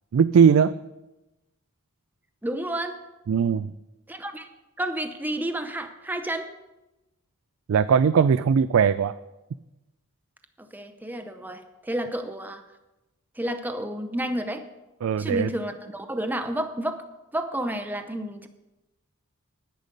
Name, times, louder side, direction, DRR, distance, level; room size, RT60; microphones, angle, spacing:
voice 1, 0.1-0.7 3.3-3.7 7.7-9.2 15.0-15.5, right 7 dB, 70° right, 14 dB, 0.3 m, -19 dB
voice 2, 2.4-3.0 4.1-4.5 4.8-6.5 10.7-12.6 13.4-14.6 15.2-17.0 17.3-18.5, right 1 dB, 10° right, 8 dB, 0.6 m, -30 dB
10.0 x 9.9 x 5.2 m, 1.0 s
head